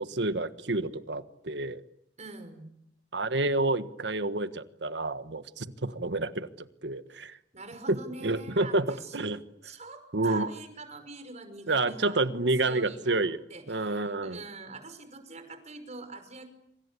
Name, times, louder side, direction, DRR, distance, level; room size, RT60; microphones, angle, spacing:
voice 1, 0.0-1.8 3.1-7.4 7.9-9.4 10.1-10.5 11.7-13.4 13.7-14.4, right 2 dB, 75° right, 11 dB, 1.5 m, -29 dB
voice 2, 2.2-2.7 7.5-9.3 9.6-12.3 12.6-13.2 13.5-16.5, right 3 dB, 40° right, 8 dB, 5.6 m, -44 dB
27.0 x 26.0 x 8.4 m, 0.76 s
head